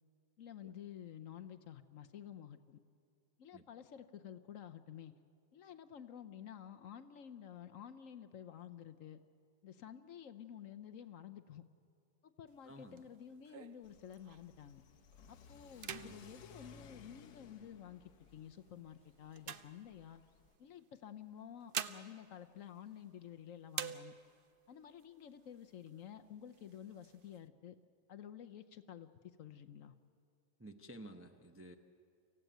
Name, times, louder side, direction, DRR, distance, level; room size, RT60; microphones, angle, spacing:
voice 1, 0.4-2.8 3.4-5.1 5.5-9.2 9.6-11.6 12.2-14.8 15.3-20.2 20.6-24.1 24.7-27.8 28.1-29.1 29.4-29.9, left 9 dB, 60° left, 9 dB, 1.0 m, -51 dB
sound 1, 12.5-14.7 15.1-15.4 15.7-17.6 18.3-20.4 21.3-23.3 23.7-24.6 25.0-25.1 25.4-26.0 26.5-27.4, right 8 dB, 65° right, 0.5 m, -47 dB
voice 2, 12.6-13.0 16.0-16.2 30.6-31.7, right 1 dB, 15° right, 5 dB, 0.5 m, -53 dB
Car / Accelerating revving vroom, 13.8-20.6, left 5 dB, 80° left, 1.5 m, -60 dB
24.5 x 15.5 x 9.1 m, 2.4 s
omnidirectional pair, 1.7 m